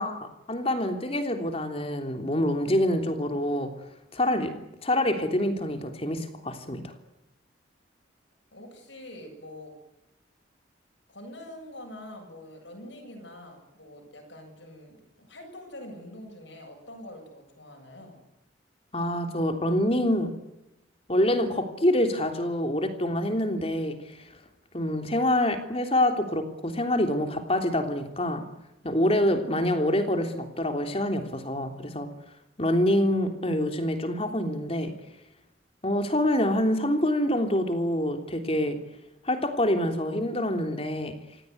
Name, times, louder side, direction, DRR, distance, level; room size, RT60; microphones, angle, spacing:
voice 1, 0.0-3.7 4.1-4.5 4.8-6.8 18.9-20.3 21.1-24.0 24.7-28.4 28.8-32.1 32.6-34.9 35.8-38.8 39.3-41.1, left 1 dB, 30° left, 6 dB, 3.3 m, -26 dB
voice 2, 8.5-9.7 11.1-18.2, left 1 dB, 70° left, 2 dB, 8.0 m, -45 dB
27.0 x 18.0 x 9.5 m, 0.94 s
head